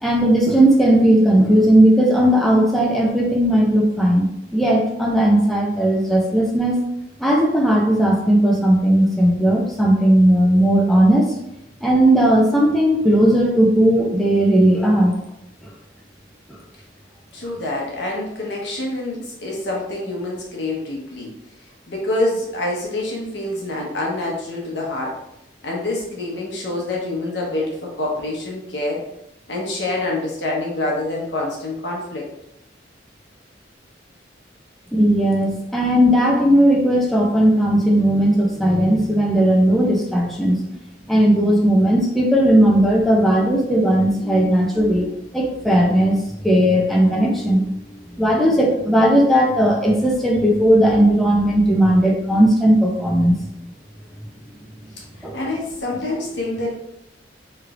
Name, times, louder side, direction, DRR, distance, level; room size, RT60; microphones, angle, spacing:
voice 1, 0.0-6.8 7.2-11.4 11.8-15.1 34.9-40.6 41.1-47.6 48.1-53.4 55.2-55.4, right 1 dB, ahead, -3 dB, 0.4 m, -16 dB
voice 2, 17.3-21.3 21.9-25.2 25.6-29.0 29.5-32.2 55.0-56.7, left 2 dB, 70° left, -3 dB, 1.0 m, -26 dB
3.1 x 3.1 x 2.4 m, 0.82 s
head